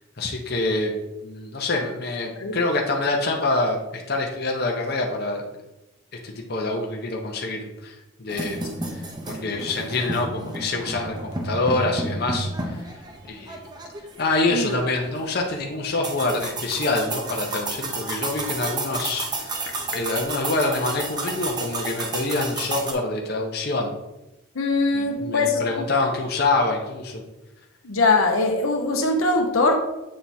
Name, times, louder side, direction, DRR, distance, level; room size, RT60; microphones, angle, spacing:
voice 1, 0.2-0.9 1.2-5.4 6.2-8.6 8.9-9.0 9.3-12.5 13.2-13.6 14.2-19.6 19.9-23.9 24.9-27.2, left 2 dB, 50° left, 0.8 m, -26 dB
sound 1, 8.3-22.9, right 2 dB, 20° right, 0.6 m, -32 dB
voice 2, 24.5-25.8 27.8-29.8, left 3 dB, 85° left, 0.9 m, -22 dB
7.5 x 3.5 x 4.2 m
head